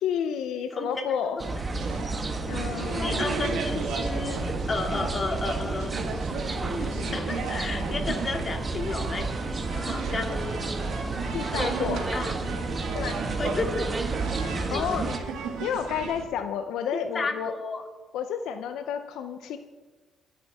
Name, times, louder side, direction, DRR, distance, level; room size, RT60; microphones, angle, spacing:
voice 1, 0.0-1.4 2.5-3.6 6.8-6.9 11.3-12.1 12.9-13.2 14.7-15.1 15.4-17.5 18.1-19.6, left 8 dB, 85° left, 8 dB, 0.6 m, -31 dB
voice 2, 0.7-1.0 1.5-1.6 3.0-5.9 6.4-10.6 11.5-12.3 12.8-12.9 13.4-14.0 14.7-14.8 16.9-17.8, left 3 dB, 35° left, 3 dB, 2.3 m, -33 dB
sound 1, 1.4-15.2, right 3 dB, 30° right, 1.3 m, -31 dB
sound 2, 1.7-16.2, right 5 dB, 90° right, 1.9 m, -35 dB
19.5 x 9.6 x 3.6 m, 1.3 s
cardioid pair, 90°, 0 cm